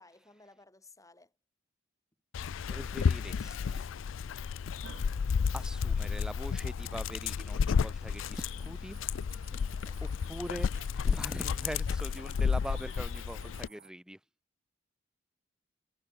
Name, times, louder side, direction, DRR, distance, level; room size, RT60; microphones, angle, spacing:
voice 1, 0.0-1.4 9.5-10.2, left 2 dB, 15° left, 7.4 m, -58 dB
Dog, 2.3-13.7, left 6 dB, 80° left, 0.4 m, -32 dB
voice 2, 2.7-3.9 5.5-9.0 10.3-14.2, equal, 5° right, 0.9 m, -42 dB
sound 1, 4.8-9.5, right 3 dB, 70° right, 1.1 m, -57 dB
sound 2, 8.2-13.9, right 6 dB, 45° right, 6.8 m, -57 dB
head